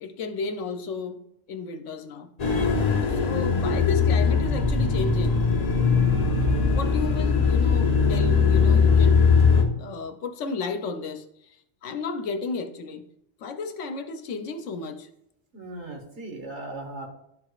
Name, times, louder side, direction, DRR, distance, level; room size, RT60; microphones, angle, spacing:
voice 1, 0.0-1.2 1.5-2.3 3.1-5.4 6.5-9.2 9.8-11.6 11.8-13.0 13.4-15.1, left 4 dB, 80° left, 7 dB, 1.0 m, -33 dB
sound 1, 2.4-9.6, left 5 dB, 40° left, 0.8 m, -20 dB
voice 2, 15.5-17.1, right 2 dB, 70° right, 2 dB, 1.5 m, -37 dB
11.5 x 4.8 x 2.4 m, 0.78 s
omnidirectional pair, 1.2 m